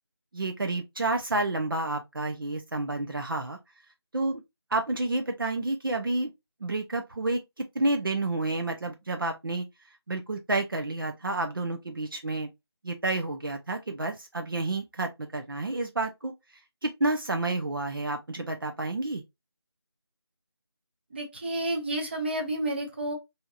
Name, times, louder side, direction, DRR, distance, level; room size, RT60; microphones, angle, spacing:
voice 1, 0.3-3.6 4.1-4.4 4.7-6.3 6.6-9.6 10.1-12.5 12.8-16.3 16.8-19.2, right 2 dB, 55° right, 0.6 m, -30 dB
voice 2, 21.1-23.1, right 1 dB, 25° right, 0.9 m, -30 dB
4.4 x 2.8 x 2.4 m
figure-of-eight pair, 170°, 14 cm